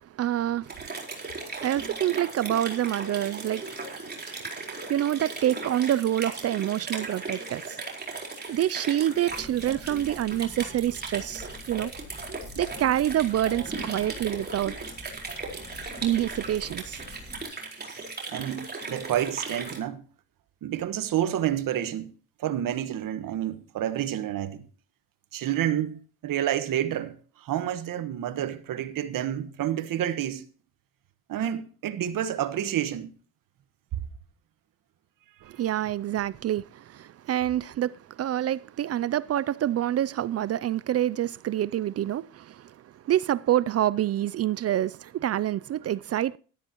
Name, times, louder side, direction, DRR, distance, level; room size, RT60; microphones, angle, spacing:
voice 1, 0.0-7.8 8.5-11.9 12.6-14.8 16.0-17.0 35.4-46.4, right 12 dB, 45° right, 0.4 m, -27 dB
sound 1, 0.6-19.8, right 3 dB, 30° right, 4.4 m, -37 dB
sound 2, 9.3-17.4, left 1 dB, 20° left, 3.8 m, -47 dB
voice 2, 18.3-20.0 20.6-22.1 22.4-24.6 25.3-30.4 31.3-33.1, right 11 dB, 70° right, 1.3 m, -29 dB
13.5 x 12.5 x 3.0 m
cardioid pair, 85°, 35 cm